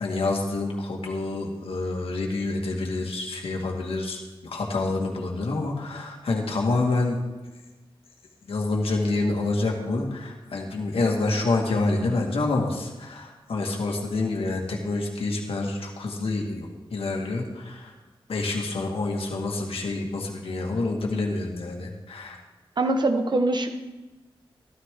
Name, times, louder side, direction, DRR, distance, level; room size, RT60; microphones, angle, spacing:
voice 1, 0.0-7.2 8.5-17.9 18.3-22.4, left 3 dB, 85° left, 0 dB, 1.9 m, -27 dB
voice 2, 22.8-23.7, right 2 dB, 50° right, 6 dB, 1.3 m, -23 dB
13.5 x 13.0 x 3.8 m, 1.1 s
wide cardioid pair, 75°, 10 cm